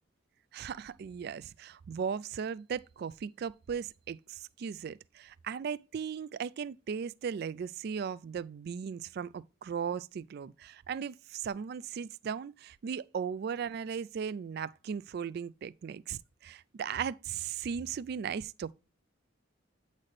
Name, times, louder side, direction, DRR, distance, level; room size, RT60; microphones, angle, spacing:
voice 1, 0.5-18.7, right 7 dB, 55° right, 0.3 m, -37 dB
8.6 x 4.1 x 3.2 m
head